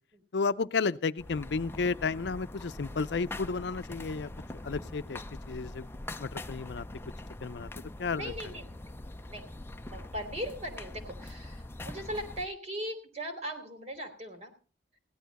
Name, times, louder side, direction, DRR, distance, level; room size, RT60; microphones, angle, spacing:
voice 1, 0.3-4.3 4.6-5.9 6.2-6.9 7.4-7.7 8.0-8.3, left 4 dB, 75° left, 0.5 m, -32 dB
sound 1, 1.2-12.4, left 1 dB, 15° left, 0.5 m, -43 dB
voice 2, 8.1-9.5 9.8-14.5, equal, 40° right, 3.0 m, -39 dB
16.5 x 11.5 x 4.1 m
head